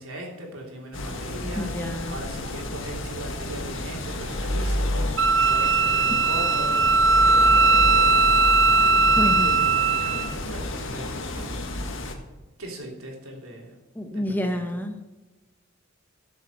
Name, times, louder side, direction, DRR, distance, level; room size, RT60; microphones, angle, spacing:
voice 1, 0.0-7.6 9.1-11.5 12.6-13.7 14.1-14.6, right 1 dB, 85° right, 0 dB, 3.4 m, -39 dB
sound 1, 0.9-12.1, left 1 dB, 60° left, 1.7 m, -30 dB
voice 2, 1.5-2.2 9.2-9.6 13.9-15.1, left 1 dB, 10° left, 5 dB, 1.0 m, -29 dB
Wind instrument woodwind instrument, 5.2-10.3, right 3 dB, 60° right, 0.7 m, -19 dB
13.5 x 7.0 x 6.6 m, 1.1 s
head